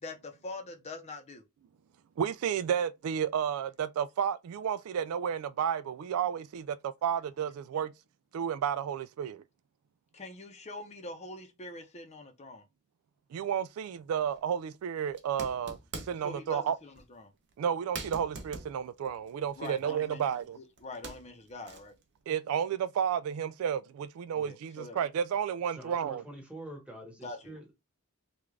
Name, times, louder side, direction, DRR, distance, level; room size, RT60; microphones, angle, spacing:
voice 1, 0.0-1.4 10.1-12.6 16.2-17.3 19.6-21.9 24.3-25.0 27.2-27.6, left 2 dB, 30° left, 0.7 m, -44 dB
voice 2, 2.2-7.9 8.3-9.4 13.3-15.8 16.1-16.8 17.6-20.6 22.3-26.2, right 8 dB, 70° right, 0.3 m, -32 dB
sound 1, 14.2-14.4 15.1-16.3 16.9-17.1 17.5-17.6 17.9-20.5 20.8-22.0, right 4 dB, 55° right, 0.8 m, -44 dB
voice 3, 25.8-27.7, right 1 dB, 5° right, 1.2 m, -46 dB
3.5 x 2.4 x 3.2 m
head